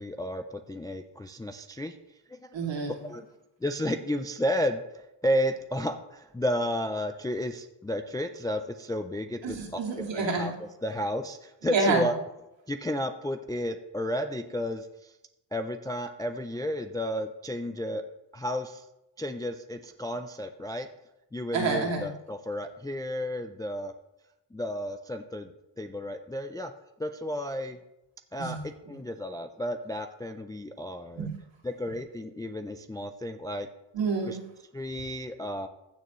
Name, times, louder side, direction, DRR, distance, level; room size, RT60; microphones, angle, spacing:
voice 1, 0.0-2.0 2.3-2.5 3.0-3.3 3.6-9.8 10.1-12.1 12.7-15.1 15.5-18.0 18.3-18.9 19.2-20.9 21.3-23.9 24.5-26.7 27.0-27.8 28.3-28.6 28.9-31.3 31.6-33.7 34.3-34.4 34.7-35.7, equal, 10° left, 7 dB, 0.3 m, -32 dB
voice 2, 2.5-3.0 9.4-10.5 11.7-12.1 21.5-22.1 28.4-28.6 31.2-31.3 33.9-34.4, right 4 dB, 65° right, -1 dB, 2.6 m, -28 dB
15.0 x 6.8 x 3.1 m, 0.92 s
cardioid pair, 120°, 48 cm